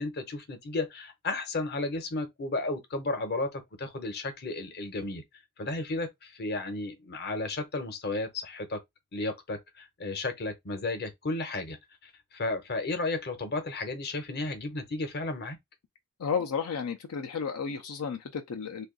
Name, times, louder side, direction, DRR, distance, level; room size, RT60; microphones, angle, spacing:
voice 1, 0.0-5.2 5.6-8.8 9.1-11.8 12.0-15.6, left 2 dB, 45° left, 0.8 m, -33 dB
voice 2, 16.2-18.9, left 6 dB, 85° left, 0.5 m, -32 dB
2.6 x 2.4 x 3.7 m
head